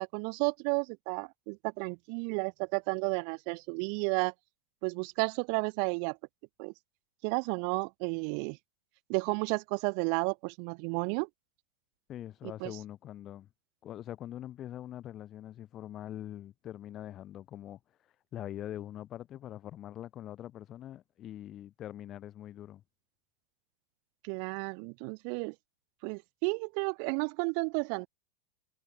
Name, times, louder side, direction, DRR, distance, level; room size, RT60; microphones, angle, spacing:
voice 1, 0.0-4.3 4.8-6.2 6.6-6.7 7.2-8.6 9.1-11.3 12.6-12.7 24.2-25.5 26.0-28.1, right 40 dB or more, 45° right, 2.5 m, -32 dB
voice 2, 12.1-13.5 13.8-17.8 18.3-22.8, left 12 dB, 30° left, 6.8 m, -43 dB
figure-of-eight pair, 90°, 0 cm